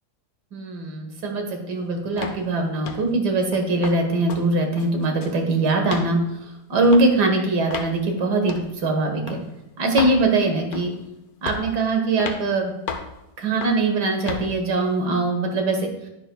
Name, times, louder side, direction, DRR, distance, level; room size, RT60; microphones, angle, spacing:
voice 1, 0.5-6.2 6.7-9.4 9.8-10.9 11.4-12.7 13.4-15.8, right 2 dB, 85° right, 3 dB, 2.1 m, -22 dB
sound 1, 2.2-2.4 2.8-3.1 3.5-4.0 4.3-4.5 4.8-5.4 5.8-6.1 6.8-7.1 7.7-7.9 8.5-8.7 9.3-9.4 10.0-10.2 10.7-11.0 11.5-11.7 12.2-12.4 12.9-13.1 13.6-13.8 14.3-14.5, left 5 dB, 70° left, 1.3 m, -32 dB
10.5 x 10.5 x 2.3 m, 0.92 s
omnidirectional pair, 1.7 m